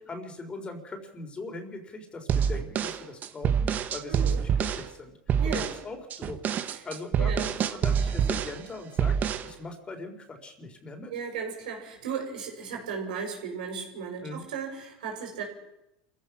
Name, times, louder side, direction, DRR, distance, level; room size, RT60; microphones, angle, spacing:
voice 1, 0.0-9.2 9.4-11.1 14.2-14.4, left 2 dB, 25° left, 5 dB, 4.3 m, -40 dB
sound 1, 2.3-4.9 5.3-5.8 6.1-8.6 9.0-9.5, right 8 dB, 40° right, 1.4 m, -26 dB
voice 2, 4.1-4.4 5.4-5.7 6.7-6.8 7.2-7.5 11.1-15.4, right 6 dB, 90° right, 1 dB, 6.7 m, -35 dB
27.0 x 15.5 x 6.3 m, 0.89 s
supercardioid pair, 100°, 4 cm